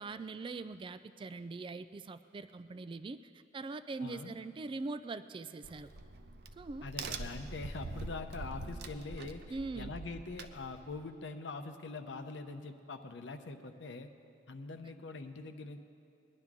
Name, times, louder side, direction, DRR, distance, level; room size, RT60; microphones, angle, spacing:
voice 1, 0.0-5.9 6.6-6.9 9.5-9.9, right 3 dB, 30° right, 12 dB, 0.3 m, -42 dB
voice 2, 4.0-4.3 6.8-14.1 14.5-15.8, left 3 dB, 75° left, 6 dB, 0.8 m, -43 dB
Crack, 5.6-11.1, right 3 dB, 60° right, 0.7 m, -44 dB
20.5 x 11.0 x 3.7 m, 2.6 s
head